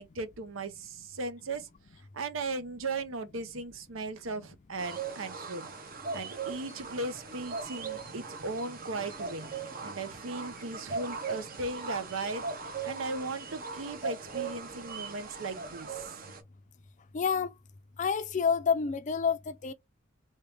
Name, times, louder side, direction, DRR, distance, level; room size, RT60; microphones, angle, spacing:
voice 1, 0.0-1.7 2.1-5.7 6.1-9.5 9.8-16.2, right 3 dB, 85° right, 0.7 m, -37 dB
sound 1, 4.8-16.4, right 4 dB, 45° right, 0.8 m, -39 dB
voice 2, 17.1-17.5 18.0-19.7, left 6 dB, 40° left, 0.4 m, -28 dB
3.2 x 2.9 x 3.3 m
head